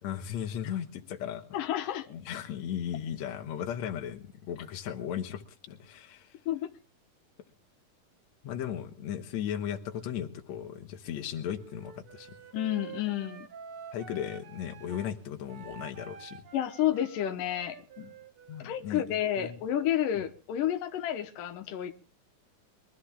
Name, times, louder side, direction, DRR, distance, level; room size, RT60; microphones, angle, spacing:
voice 1, 0.0-1.4 2.1-6.3 8.4-12.3 13.9-16.4 18.0-18.1 18.5-19.6 20.2-20.3, left 9 dB, 65° left, 5 dB, 2.5 m, -36 dB
voice 2, 1.5-2.1 6.5-6.7 12.5-13.5 16.5-18.1 18.6-21.9, left 11 dB, 85° left, 7 dB, 2.7 m, -30 dB
Wind instrument woodwind instrument, 11.6-15.1 15.5-19.2, right 7 dB, 60° right, 1.6 m, -49 dB
22.5 x 13.5 x 3.6 m, 0.38 s
omnidirectional pair, 3.7 m